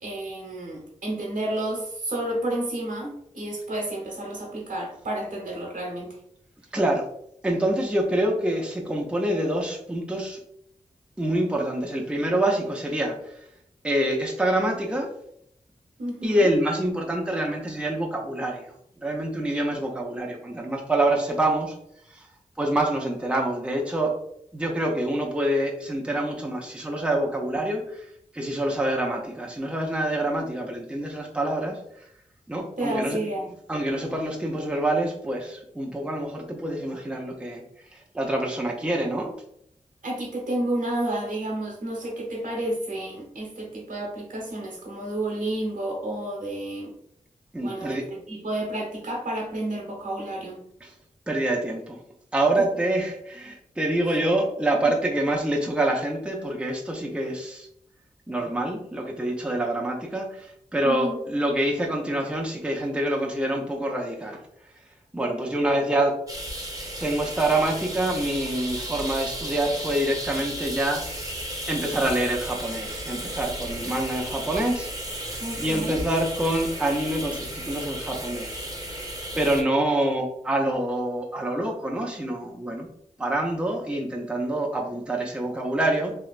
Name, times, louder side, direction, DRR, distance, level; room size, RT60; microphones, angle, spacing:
voice 1, 0.0-6.1 16.0-16.5 32.8-33.5 40.0-46.9 47.6-50.6 52.6-52.7 54.8-54.9 60.8-61.2 75.4-76.0, right 1 dB, 80° right, -2 dB, 1.1 m, -31 dB
voice 2, 6.7-7.1 7.4-10.4 11.2-13.2 13.8-15.1 16.2-18.7 19.0-21.7 22.1-22.3 22.6-24.1 24.5-28.0 28.3-31.8 32.5-33.2 33.7-37.6 37.9-39.3 47.5-48.1 50.8-50.9 51.3-52.0 52.3-57.7 58.3-64.4 65.1-66.1 67.0-71.3 71.7-78.7 79.3-82.9 83.2-86.2, right 1 dB, 10° right, 0 dB, 0.6 m, -26 dB
sound 1, 66.3-79.6, equal, 25° right, 0.8 m, -34 dB
3.2 x 2.8 x 2.4 m, 0.72 s
wide cardioid pair, 85°, 14 cm